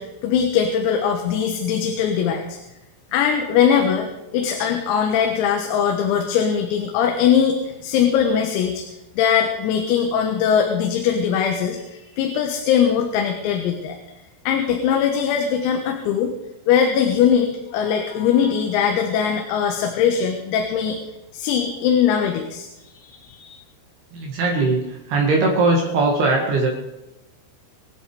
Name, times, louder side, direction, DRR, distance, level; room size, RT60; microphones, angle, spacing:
voice 1, 0.0-2.6 3.1-8.8 9.2-14.0 14.5-16.3 16.7-21.0 21.3-22.7 22.9-23.6, left 8 dB, 90° left, 3 dB, 4.1 m, -21 dB
voice 2, 24.1-24.8 25.1-26.7, right 3 dB, 60° right, 0 dB, 3.5 m, -19 dB
25.5 x 8.7 x 5.0 m, 0.94 s
omnidirectional pair, 6.0 m